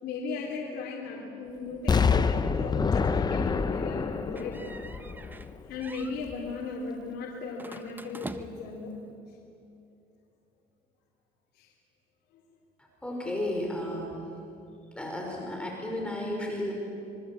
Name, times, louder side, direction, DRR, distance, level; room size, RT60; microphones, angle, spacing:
voice 1, 0.0-4.6 5.7-8.9 11.6-11.7, left 4 dB, 75° left, -3 dB, 3.8 m, -37 dB
Explosion, 1.9-5.8 6.3-6.4, left 5 dB, 25° left, 0.9 m, -27 dB
sound 1, 4.3-5.5 5.8-6.2 7.6-8.8, right 2 dB, 10° right, 1.2 m, -43 dB
voice 2, 12.8-14.2 14.9-16.7, left 1 dB, 5° left, -1 dB, 5.6 m, -33 dB
26.5 x 23.0 x 8.7 m, 2.7 s
cardioid pair, 110°, 17 cm